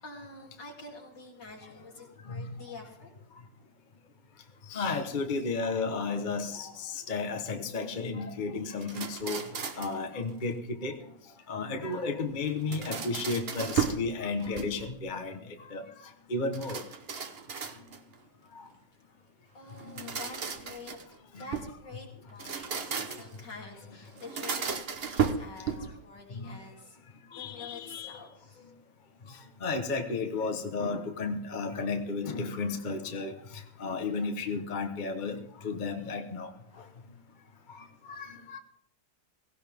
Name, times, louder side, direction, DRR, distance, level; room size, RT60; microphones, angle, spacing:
voice 1, 0.0-3.1 19.5-21.0 21.4-27.0 27.3-28.7, left 3 dB, 65° left, -1 dB, 3.6 m, -47 dB
voice 2, 4.7-9.4 9.8-11.0 11.5-15.4 15.7-15.8 16.3-16.8 18.6-18.7 20.0-20.1 21.3-21.5 26.3-26.6 27.3-28.2 29.6-35.4 35.6-36.5 36.8-36.9 37.7-38.6, left 4 dB, 30° left, 5 dB, 1.1 m, -33 dB
sound 1, 8.8-10.0 12.4-14.1 14.4-15.0 16.5-18.1 19.7-21.8 22.3-23.4 24.2-26.0, right 6 dB, 40° right, 1.0 m, -34 dB
17.0 x 17.0 x 3.6 m, 0.70 s
omnidirectional pair, 2.0 m